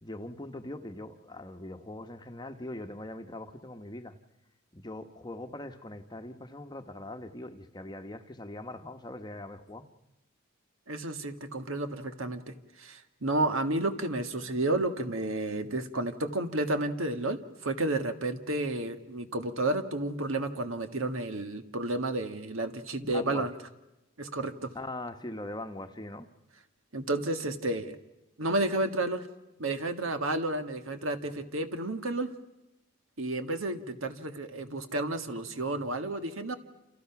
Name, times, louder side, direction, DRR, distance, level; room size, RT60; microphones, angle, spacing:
voice 1, 0.0-4.2 4.7-9.9 23.0-23.5 24.7-26.3, left 1 dB, 20° left, 6 dB, 1.1 m, -41 dB
voice 2, 10.9-12.5 12.8-23.5 24.2-24.7 26.9-28.0 28.4-29.2 29.6-32.3 33.2-36.5, right 2 dB, 70° right, 7 dB, 1.7 m, -31 dB
29.0 x 28.5 x 5.9 m, 0.97 s
head